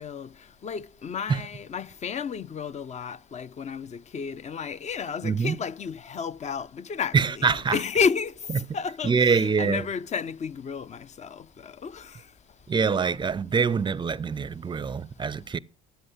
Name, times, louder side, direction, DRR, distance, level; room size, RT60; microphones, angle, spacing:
voice 1, 0.0-12.3, left 6 dB, 35° left, 0.5 m, -32 dB
voice 2, 5.2-5.6 7.1-7.8 9.0-9.9 12.7-15.6, right 5 dB, 25° right, 0.5 m, -24 dB
10.0 x 7.8 x 9.6 m
hypercardioid pair, 65°, 21 cm